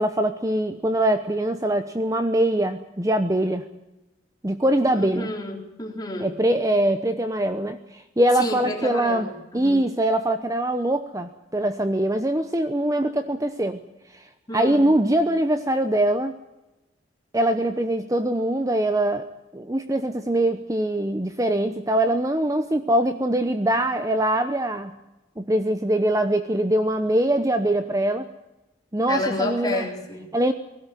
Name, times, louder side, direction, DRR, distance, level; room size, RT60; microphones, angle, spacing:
voice 1, 0.0-3.7 4.4-5.3 6.2-9.3 9.5-13.8 14.1-14.3 14.5-16.3 17.3-19.3 19.5-24.9 25.4-28.3 28.9-29.9 30.3-30.5, right 1 dB, 20° right, 9 dB, 0.9 m, -23 dB
voice 2, 4.9-6.3 8.4-9.8 14.5-14.9 29.1-30.3, left 2 dB, 20° left, 1 dB, 3.8 m, -30 dB
19.5 x 16.5 x 9.2 m, 0.96 s
head